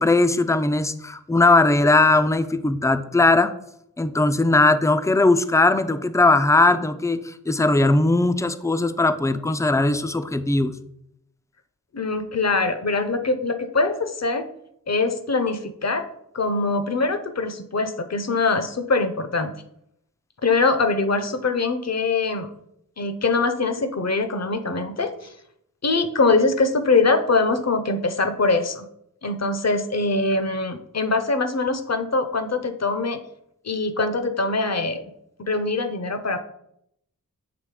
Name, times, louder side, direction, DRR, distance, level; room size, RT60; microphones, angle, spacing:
voice 1, 0.0-3.5 4.0-10.8, left 2 dB, 10° left, 11 dB, 0.4 m, -19 dB
voice 2, 11.9-14.4 14.9-16.1 16.3-19.5 20.4-22.5 23.0-25.3 25.8-28.9 29.2-33.2 33.6-35.0 35.4-36.4, left 3 dB, 45° left, 9 dB, 0.8 m, -23 dB
7.0 x 3.1 x 4.9 m, 0.76 s
cardioid pair, 45°, 35 cm